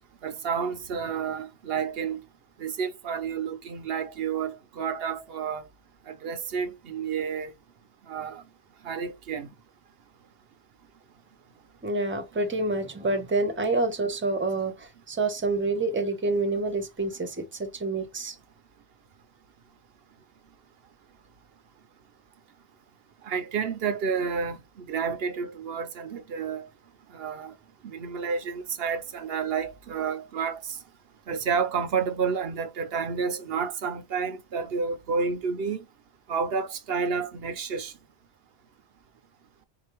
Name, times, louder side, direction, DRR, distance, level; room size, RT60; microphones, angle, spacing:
voice 1, 0.2-2.2 2.6-5.7 6.1-7.5 8.1-8.4 8.8-9.5 23.2-26.7 27.1-27.5 27.8-30.8 31.3-35.8 36.3-37.9, right 6 dB, 60° right, 0.8 m, -30 dB
voice 2, 11.8-18.3, right 2 dB, 10° right, 0.7 m, -28 dB
4.6 x 2.4 x 2.9 m
omnidirectional pair, 1.2 m